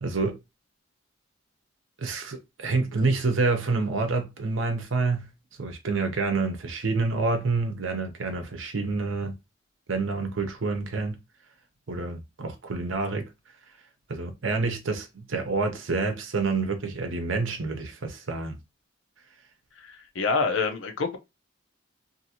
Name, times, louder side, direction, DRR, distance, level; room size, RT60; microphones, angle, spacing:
voice 1, 0.0-0.4 2.0-5.3 5.6-9.4 9.9-11.2 11.9-13.3 14.1-18.6, right 3 dB, 80° right, 0.7 m, -28 dB
voice 2, 19.8-21.2, left 4 dB, 80° left, 0.6 m, -27 dB
2.7 x 2.6 x 2.8 m
head